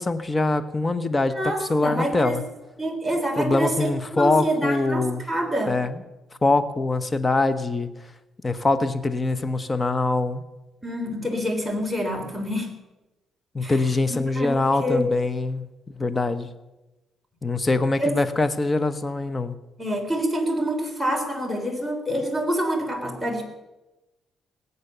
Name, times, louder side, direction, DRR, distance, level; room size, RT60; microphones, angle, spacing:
voice 1, 0.0-2.4 3.4-5.2 5.7-6.0 6.4-7.9 8.4-10.4 13.5-16.5 17.4-19.6, left 2 dB, 25° left, 12 dB, 1.1 m, -23 dB
voice 2, 1.3-2.3 2.8-5.7 10.8-12.7 13.6-14.5 14.8-15.0 18.0-18.2 19.8-23.5, equal, ahead, 4 dB, 3.5 m, -27 dB
19.5 x 8.4 x 6.8 m, 1.0 s
cardioid pair, 90°, 0 cm